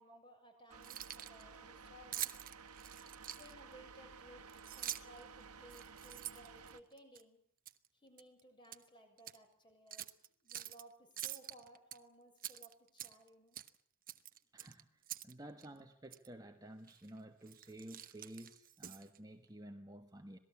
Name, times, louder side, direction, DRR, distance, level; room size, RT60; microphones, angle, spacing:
voice 1, 0.0-2.3 3.3-7.4 7.9-10.1 10.4-13.6, equal, 20° left, 5 dB, 6.7 m, -60 dB
Keys jangling, 0.7-1.4 2.1-3.7 4.5-5.2 5.7-7.2 7.7-7.9 8.2-8.8 9.2-9.4 9.9-10.8 11.2-12.0 12.4-13.3 13.5-13.8 14.1-15.3 15.6-15.7 16.1-16.3 16.9-17.1 17.4-19.2, right 12 dB, 40° right, 1.0 m, -46 dB
sound 1, 0.7-6.8, right 5 dB, 90° right, 1.6 m, -55 dB
voice 2, 14.5-20.4, right 1 dB, 15° right, 5 dB, 1.4 m, -53 dB
26.5 x 19.5 x 8.6 m, 0.62 s
head